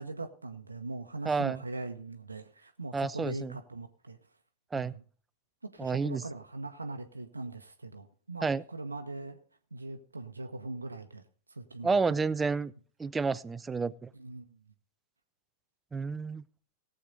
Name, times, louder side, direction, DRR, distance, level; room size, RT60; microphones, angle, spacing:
voice 1, 0.0-4.2 4.7-5.0 5.6-9.4 9.7-11.2 11.5-11.9 14.1-14.6, right 2 dB, 80° right, 7 dB, 0.9 m, -41 dB
voice 2, 1.2-1.6 2.9-3.6 4.7-4.9 5.8-6.2 8.4-8.6 11.8-12.7 13.0-14.1 15.9-16.4, right 4 dB, 15° right, 17 dB, 0.5 m, -30 dB
17.5 x 7.9 x 4.0 m, 0.44 s
figure-of-eight pair, 95°, 0 cm